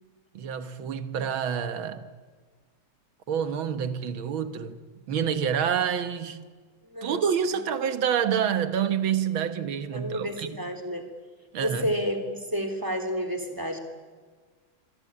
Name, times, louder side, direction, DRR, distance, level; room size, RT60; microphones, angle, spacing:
voice 1, 0.3-2.1 3.3-4.8 5.1-6.4 7.0-10.6 11.5-11.9, right 8 dB, 90° right, 2.1 m, -27 dB
voice 2, 6.8-7.6 9.9-11.1 11.6-13.8, equal, 10° right, 2.9 m, -31 dB
26.5 x 23.0 x 8.7 m
omnidirectional pair, 2.1 m